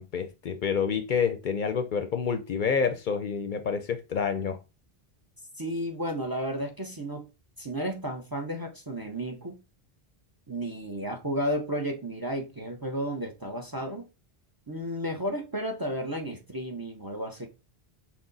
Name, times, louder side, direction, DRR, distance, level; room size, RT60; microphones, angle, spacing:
voice 1, 0.0-4.6, left 6 dB, 60° left, 0.6 m, -28 dB
voice 2, 5.5-7.3 7.6-9.6 10.5-14.1 14.7-17.5, equal, 25° right, 0.6 m, -33 dB
6.0 x 2.0 x 3.8 m
omnidirectional pair, 1.0 m